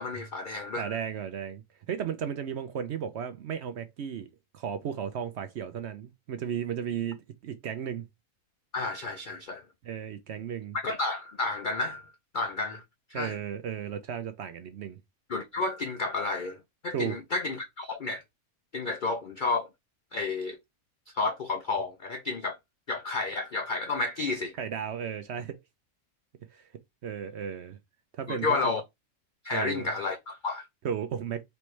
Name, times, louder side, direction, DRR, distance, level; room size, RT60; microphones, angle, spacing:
voice 1, 0.0-1.0 8.7-9.6 10.8-12.8 13.1-13.4 15.3-18.2 18.7-19.7 20.1-20.6 21.1-22.6 22.9-24.5 28.3-28.8 29.4-30.7, left 3 dB, 70° left, 0.4 m, -31 dB
voice 2, 0.8-4.3 4.5-8.0 9.8-10.8 13.1-15.0 16.9-17.2 24.6-25.6 26.5-26.7 27.0-27.8 28.2-28.8 29.5-29.9 30.8-31.4, right 8 dB, 65° right, 0.7 m, -34 dB
4.4 x 3.1 x 3.1 m
omnidirectional pair, 1.5 m